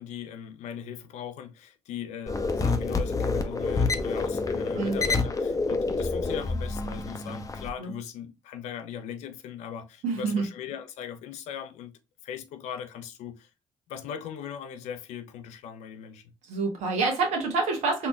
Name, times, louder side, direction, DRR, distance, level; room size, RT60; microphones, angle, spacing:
voice 1, 0.0-13.5 13.9-16.3, left 8 dB, 75° left, 0.5 m, -39 dB
sound 1, 2.3-7.7, left 3 dB, 30° left, 0.7 m, -28 dB
voice 2, 10.0-10.4 16.5-18.1, right 4 dB, 70° right, 1.1 m, -27 dB
4.2 x 2.9 x 2.3 m
hypercardioid pair, 40°, 12 cm